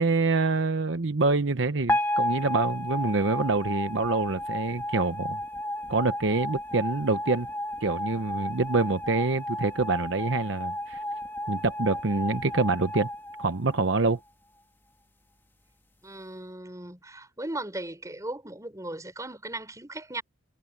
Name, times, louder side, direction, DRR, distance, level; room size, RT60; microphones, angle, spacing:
voice 1, 0.0-5.4 5.9-7.5 7.8-11.0 11.5-13.1 13.4-14.2, right 3 dB, 65° right, 0.9 m, -26 dB
sound 1, 1.9-14.2, left 1 dB, 10° left, 1.8 m, -32 dB
voice 2, 16.0-20.2, right 2 dB, 15° right, 5.4 m, -37 dB
head